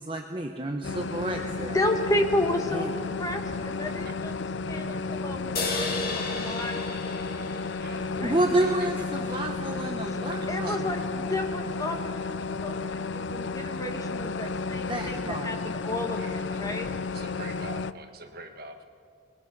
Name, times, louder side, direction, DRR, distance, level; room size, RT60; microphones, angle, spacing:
voice 1, 0.0-1.8 2.7-2.9 8.2-11.0 14.7-15.6, right 1 dB, 25° right, 3 dB, 1.0 m, -30 dB
sound 1, 0.8-17.9, left 4 dB, 65° left, 0.6 m, -32 dB
voice 2, 1.7-7.4 8.2-8.4 10.5-16.9, left 1 dB, 15° left, 4 dB, 1.6 m, -32 dB
sound 2, 5.6-9.0, left 3 dB, 50° left, 2.4 m, -34 dB
voice 3, 8.3-8.9 9.3-9.5 10.6-10.8 16.1-16.7 17.1-18.9, right 3 dB, 50° right, 5 dB, 1.7 m, -44 dB
28.5 x 21.0 x 6.1 m, 2.3 s
head